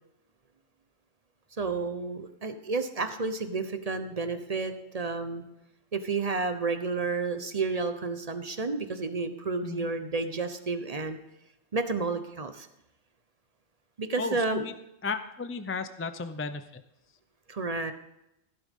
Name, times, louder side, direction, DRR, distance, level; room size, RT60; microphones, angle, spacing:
voice 1, 1.6-5.4 5.9-11.2 11.7-12.7 14.0-14.7 17.5-17.9, right 3 dB, 35° right, 9 dB, 0.9 m, -31 dB
voice 2, 14.2-14.7 15.0-16.8, left 4 dB, 20° left, 10 dB, 0.4 m, -34 dB
15.0 x 12.0 x 3.7 m, 0.85 s
omnidirectional pair, 1.1 m